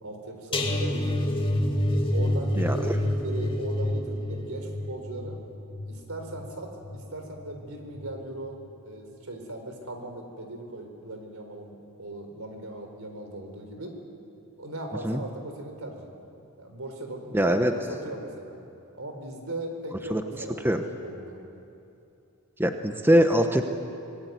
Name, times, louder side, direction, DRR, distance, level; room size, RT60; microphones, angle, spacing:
voice 1, 0.0-1.2 2.1-5.4 5.9-8.6 8.8-14.0 14.6-16.1 16.6-18.6 19.0-21.4, right 1 dB, 80° right, 4 dB, 4.2 m, -38 dB
sound 1, 0.5-7.6 7.9-8.3 8.6-8.7, left 1 dB, 25° left, 2.2 m, -28 dB
voice 2, 17.3-17.7 20.1-20.2 20.6-20.8 22.6-23.6, equal, 10° right, 6 dB, 1.1 m, -22 dB
25.0 x 19.5 x 9.4 m, 2.8 s
head